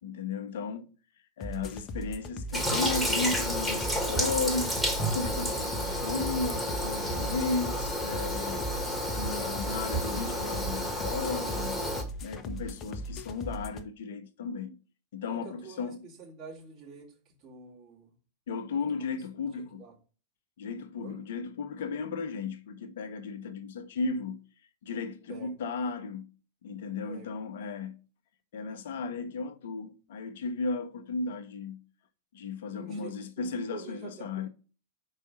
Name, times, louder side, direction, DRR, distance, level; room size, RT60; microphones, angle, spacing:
voice 1, 0.0-0.9 1.4-4.8 5.1-8.6 9.2-11.8 12.2-14.8 15.1-16.0 18.5-19.8 20.6-24.4 24.8-26.3 26.6-28.0 28.5-31.8 32.3-34.5, left 4 dB, 55° left, 0.9 m, -35 dB
sound 1, 1.4-13.8, left 1 dB, 30° left, 0.8 m, -39 dB
Toilet flush, 2.5-12.0, equal, ahead, 1.6 m, -31 dB
voice 2, 15.3-18.1 18.9-19.1 19.4-19.9 21.0-21.2 25.3-25.5 27.1-27.3 32.6-34.5, right 5 dB, 40° right, 2.7 m, -47 dB
5.4 x 4.9 x 6.3 m
figure-of-eight pair, 90°, 0 cm